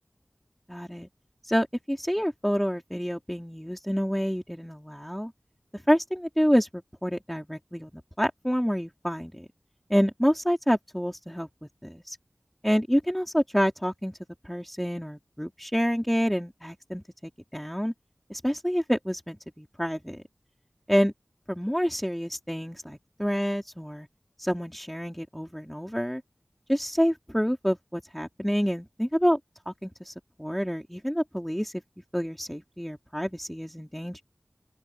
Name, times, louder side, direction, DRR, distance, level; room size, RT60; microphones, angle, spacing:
voice 1, 0.7-1.1 1.4-5.3 5.9-9.5 9.9-11.5 11.8-12.2 12.6-14.2 14.4-17.0 17.5-17.9 18.3-20.2 20.9-21.1 21.5-24.1 24.4-26.2 26.7-29.4 29.7-31.8 32.1-34.2, equal, 5° left, 3.0 m, -28 dB
open air
wide cardioid pair, 60°, 3 cm